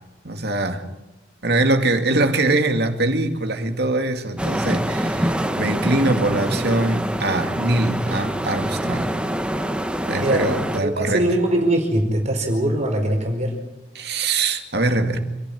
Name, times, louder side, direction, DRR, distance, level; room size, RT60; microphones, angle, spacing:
voice 1, 0.2-0.8 1.4-9.1 10.1-11.3 13.9-15.2, right 2 dB, 65° right, 5 dB, 2.4 m, -22 dB
sound 1, 4.4-10.8, equal, 5° right, 1.4 m, -25 dB
voice 2, 10.8-13.5, right 1 dB, 40° right, 3 dB, 4.7 m, -21 dB
27.0 x 11.5 x 10.0 m, 1.0 s
head